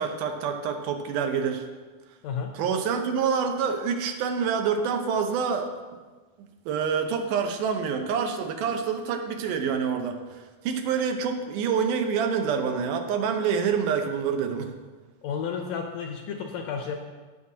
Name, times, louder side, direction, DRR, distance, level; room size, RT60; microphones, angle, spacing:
voice 1, 0.0-1.7 2.5-5.7 6.7-14.7, right 6 dB, 85° right, 5 dB, 2.4 m, -27 dB
voice 2, 15.2-16.9, left 6 dB, 75° left, 4 dB, 1.6 m, -32 dB
15.5 x 6.2 x 2.8 m, 1.4 s
omnidirectional pair, 3.6 m